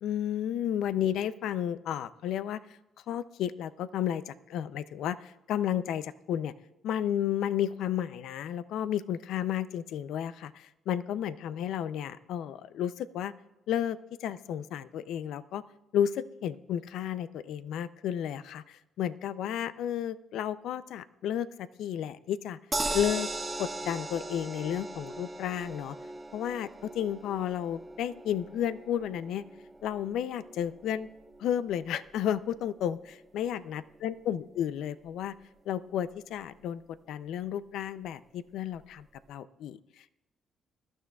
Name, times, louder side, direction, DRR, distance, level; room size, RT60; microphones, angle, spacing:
voice 1, 0.0-2.6 3.1-6.5 6.8-13.3 13.7-15.6 15.9-22.6 22.9-23.3 23.6-26.0 26.3-29.4 29.8-31.1 31.4-35.4 35.7-36.8 37.1-40.2, left 10 dB, 80° left, 15 dB, 0.4 m, -32 dB
sound 1, 22.7-34.9 35.3-35.4 35.7-35.8, right 2 dB, 20° right, 1.4 m, -40 dB
21.0 x 12.0 x 2.3 m, 0.94 s
cardioid pair, 90°, 0 cm